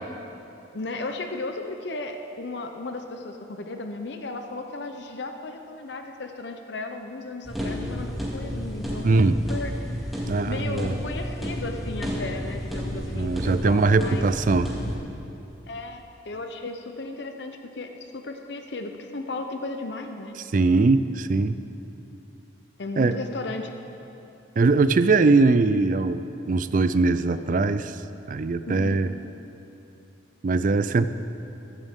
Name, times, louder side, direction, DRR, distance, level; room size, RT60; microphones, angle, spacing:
voice 1, 0.7-14.2 15.7-20.4 22.8-23.7 28.7-29.0, left 2 dB, 65° left, 5 dB, 0.7 m, -35 dB
sound 1, 7.4-15.0, equal, ahead, 2.1 m, -31 dB
voice 2, 9.0-9.4 10.3-10.9 13.1-14.7 20.5-21.6 23.0-23.1 24.6-28.0 28.3-29.1 30.4-31.1, right 3 dB, 45° right, 12 dB, 0.4 m, -21 dB
15.5 x 12.5 x 3.7 m, 3.0 s
head